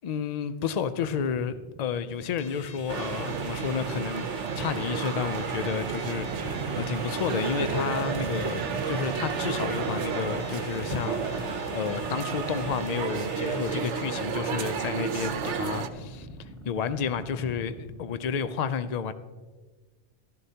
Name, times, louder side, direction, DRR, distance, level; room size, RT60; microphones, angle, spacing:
voice 1, 0.0-19.1, left 6 dB, 70° left, 0.4 m, -31 dB
sound 1, 0.9-18.4, right 1 dB, ahead, 1.9 m, -45 dB
sound 2, 2.4-13.8, left 5 dB, 45° left, 0.7 m, -48 dB
sound 3, 2.9-15.9, right 6 dB, 70° right, 1.0 m, -31 dB
14.5 x 12.5 x 2.8 m
omnidirectional pair, 1.3 m